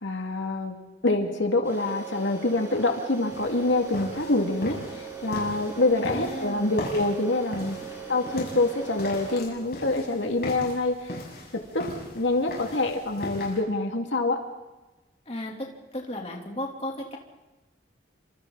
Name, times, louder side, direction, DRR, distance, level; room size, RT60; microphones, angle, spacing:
voice 1, 0.0-0.8 1.0-7.8 8.1-11.1 11.5-11.8 12.1-14.4, left 2 dB, 85° left, 3 dB, 2.4 m, -26 dB
sound 1, 1.6-9.3, right 6 dB, 15° right, 4.9 m, -40 dB
sound 2, 3.3-13.6, left 1 dB, 55° left, 7.3 m, -39 dB
voice 2, 6.0-6.7 7.9-8.0 15.3-15.7 15.9-17.2, left 1 dB, 30° left, 0 dB, 3.2 m, -34 dB
29.5 x 26.5 x 4.1 m, 1.1 s
head